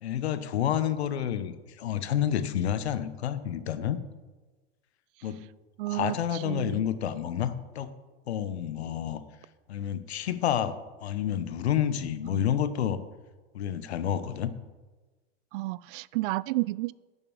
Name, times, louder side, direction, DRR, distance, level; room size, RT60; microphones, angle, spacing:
voice 1, 0.0-4.0 5.2-5.4 5.9-7.9 8.3-9.2 9.7-10.7 11.0-13.0 13.5-14.5, left 10 dB, 85° left, 12 dB, 1.1 m, -29 dB
voice 2, 5.8-6.9 12.3-12.5 15.5-16.9, right 19 dB, 60° right, 21 dB, 0.5 m, -31 dB
11.0 x 7.0 x 7.2 m, 1.3 s
hypercardioid pair, 120°, 31 cm